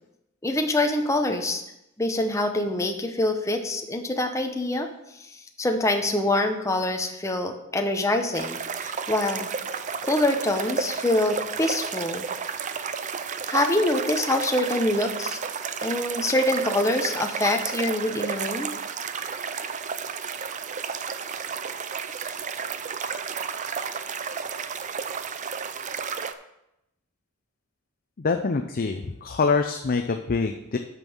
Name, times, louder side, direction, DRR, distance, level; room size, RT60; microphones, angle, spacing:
voice 1, 0.4-1.6 2.0-4.9 5.6-9.5 10.0-12.3 13.5-15.4 15.8-18.7, left 1 dB, 15° left, 4 dB, 0.8 m, -25 dB
sound 1, 8.3-26.3, right 6 dB, 35° right, 0.5 m, -32 dB
voice 2, 28.2-30.8, left 4 dB, 45° left, 5 dB, 0.5 m, -25 dB
9.0 x 5.4 x 6.2 m, 0.85 s
head